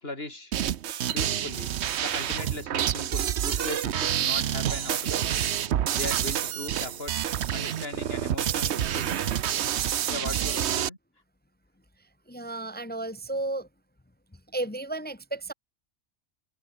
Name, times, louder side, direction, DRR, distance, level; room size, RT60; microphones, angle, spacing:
voice 1, 0.0-0.5 1.1-1.7 2.0-5.5 5.9-7.1 7.5-9.3 10.1-11.0, left 2 dB, 55° left, 4.9 m, -38 dB
sound 1, 0.5-10.9, right 10 dB, 70° right, 1.0 m, -28 dB
sound 2, 2.0-7.0, right 1 dB, 50° right, 6.6 m, -52 dB
voice 2, 12.3-13.7 14.5-15.5, right 2 dB, 15° left, 0.4 m, -33 dB
open air
omnidirectional pair, 1.2 m